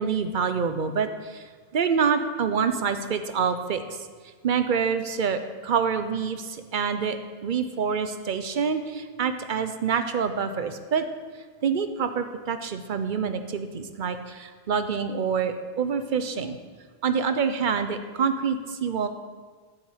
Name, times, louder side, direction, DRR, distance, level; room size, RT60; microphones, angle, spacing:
voice 1, 0.0-1.4 1.7-3.8 4.4-11.1 11.6-16.6 17.0-19.1, right 6 dB, 55° right, 9 dB, 0.9 m, -26 dB
9.9 x 6.9 x 7.9 m, 1.5 s
omnidirectional pair, 1.1 m